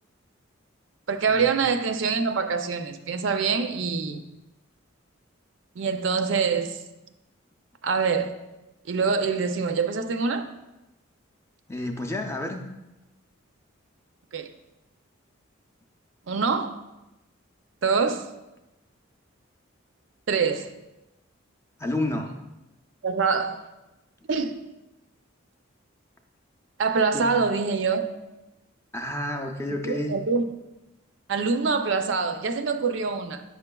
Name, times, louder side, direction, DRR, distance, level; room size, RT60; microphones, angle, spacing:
voice 1, 1.1-4.2 5.8-6.8 7.8-8.3 8.9-10.5 14.3-14.5 16.3-16.7 17.8-18.3 20.3-20.7 23.0-23.6 24.3-24.5 26.8-28.1 29.8-30.4 31.3-33.4, right 5 dB, 65° right, 0.4 m, -25 dB
voice 2, 11.7-12.6 21.8-22.4 27.1-27.3 28.9-30.1, left 1 dB, 15° left, 0.4 m, -29 dB
8.2 x 5.7 x 2.2 m
head